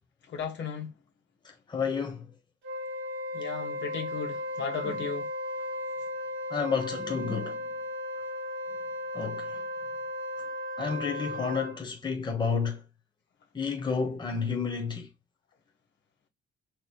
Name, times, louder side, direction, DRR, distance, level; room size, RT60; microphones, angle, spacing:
voice 1, 0.3-0.9 3.3-5.3, left 6 dB, 65° left, 1.7 m, -35 dB
voice 2, 1.4-2.3 4.8-5.0 6.5-7.7 9.1-9.6 10.8-12.8 13.5-15.1, left 5 dB, 20° left, 1.1 m, -31 dB
Wind instrument woodwind instrument, 2.6-11.8, left 1 dB, 65° right, 2.3 m, -35 dB
4.6 x 3.2 x 2.4 m
cardioid pair, 90°, 20 cm